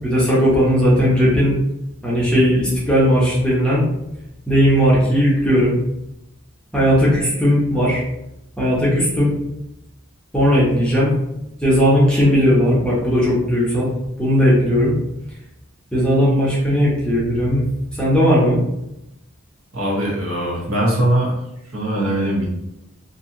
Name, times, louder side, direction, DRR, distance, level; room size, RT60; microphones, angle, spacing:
voice 1, 0.0-1.6 2.0-3.8 4.5-5.8 6.7-8.0 8.6-9.3 10.3-11.1 11.6-13.9 14.2-14.9 15.9-17.7 17.9-18.6, equal, 5° left, -7 dB, 0.7 m, -16 dB
voice 2, 19.7-21.4 21.7-22.4, right 1 dB, 65° right, -4 dB, 1.0 m, -20 dB
2.7 x 2.7 x 2.6 m, 0.86 s
head